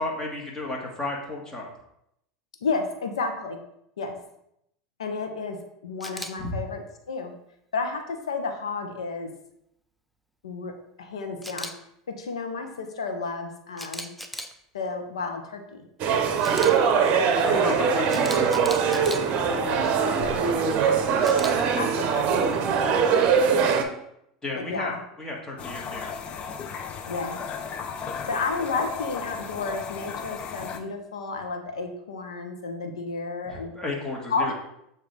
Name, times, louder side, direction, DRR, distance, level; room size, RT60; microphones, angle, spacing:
voice 1, 0.0-1.7 6.4-6.5 17.4-19.0 24.4-24.9 25.2-26.2 33.4-34.5, left 2 dB, 20° left, -1 dB, 1.8 m, -33 dB
voice 2, 2.6-3.6 4.0-4.2 5.0-5.6 5.8-6.8 7.1-7.3 7.7-9.3 10.4-10.7 11.0-11.7 12.2-14.1 14.7-15.9 19.5-21.0 21.2-23.6 24.6-25.0 27.1-27.4 28.3-33.7 34.3-34.5, left 4 dB, 85° left, 4 dB, 0.9 m, -32 dB
Camera, 6.0-6.3 11.4-11.7 13.8-14.5 16.4-16.7 18.1-19.2 21.2-21.5, equal, ahead, 0.6 m, -36 dB
sound 1, 16.0-23.8, right 6 dB, 50° right, 0.7 m, -22 dB
sound 2, 25.6-30.8, left 6 dB, 40° left, 0.7 m, -35 dB
7.2 x 2.7 x 4.8 m, 0.78 s
hypercardioid pair, 90°, 3 cm